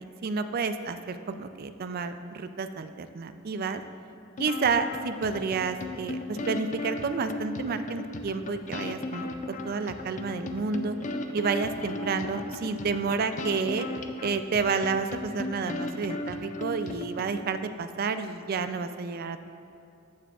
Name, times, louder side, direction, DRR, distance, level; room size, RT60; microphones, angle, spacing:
voice 1, 0.0-3.8 4.4-11.0 11.3-13.9 14.2-19.4, right 4 dB, 45° right, 10 dB, 0.3 m, -30 dB
sound 1, 4.4-17.3, left 2 dB, 35° left, 0.4 m, -36 dB
14.0 x 5.9 x 2.4 m, 2.6 s
head